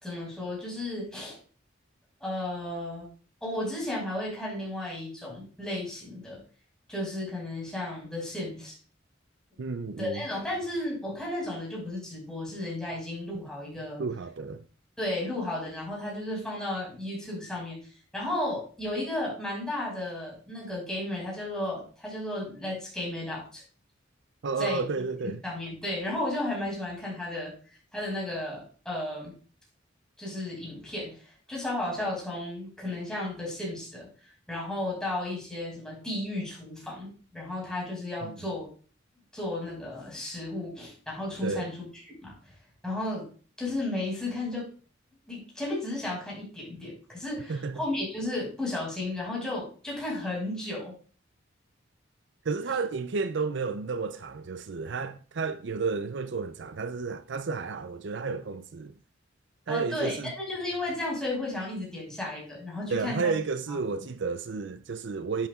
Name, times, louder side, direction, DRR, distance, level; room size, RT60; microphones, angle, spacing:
voice 1, 0.0-1.4 2.2-3.1 3.4-6.4 6.9-8.8 10.0-14.0 15.0-23.6 24.6-27.5 27.9-29.3 30.2-34.1 34.5-38.7 39.3-42.3 42.8-43.2 43.6-44.7 45.3-50.9 59.7-63.3 63.7-63.8, left 1 dB, 5° left, 5.3 m, -34 dB
voice 2, 9.6-10.2 14.0-14.6 24.4-25.4 38.2-38.3 41.4-41.7 47.5-47.8 52.5-58.9 59.7-60.3 62.9-65.5, right 4 dB, 65° right, 0.5 m, -32 dB
10.5 x 8.6 x 2.4 m
head